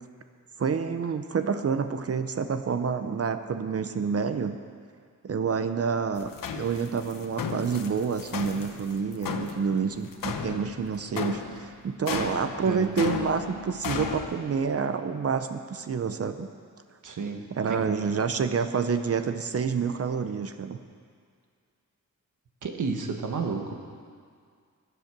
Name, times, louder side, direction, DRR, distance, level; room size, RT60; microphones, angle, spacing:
voice 1, 0.6-4.5 5.2-16.5 17.5-20.8, right 6 dB, 45° right, 9 dB, 0.7 m, -28 dB
sound 1, 6.2-14.4, left 6 dB, 90° left, 1.0 m, -35 dB
voice 2, 17.0-17.8 22.6-23.7, right 4 dB, 65° right, 3 dB, 1.5 m, -31 dB
21.5 x 8.1 x 6.0 m, 2.1 s
wide cardioid pair, 170°, 32 cm